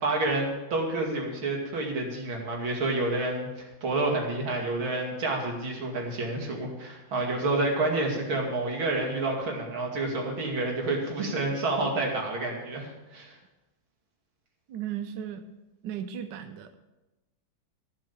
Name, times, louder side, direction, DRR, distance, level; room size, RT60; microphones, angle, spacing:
voice 1, 0.0-13.3, right 2 dB, 85° right, 0 dB, 3.3 m, -29 dB
voice 2, 14.7-15.5 15.8-16.8, right 9 dB, 70° right, 8 dB, 1.3 m, -36 dB
14.5 x 7.5 x 7.1 m, 1.0 s
omnidirectional pair, 2.2 m